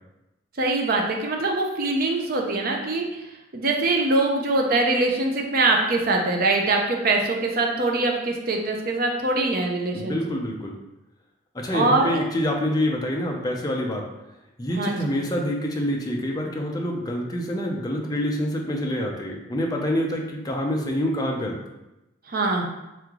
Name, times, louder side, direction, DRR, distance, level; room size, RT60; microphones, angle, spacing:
voice 1, 0.6-3.0 3.5-10.2 11.7-12.2 14.8-15.0 22.3-22.6, right 2 dB, 45° right, 1 dB, 0.6 m, -23 dB
voice 2, 9.9-10.8 11.5-14.1 14.6-21.6, equal, 20° left, 0 dB, 0.5 m, -26 dB
3.5 x 3.1 x 3.6 m, 0.96 s
head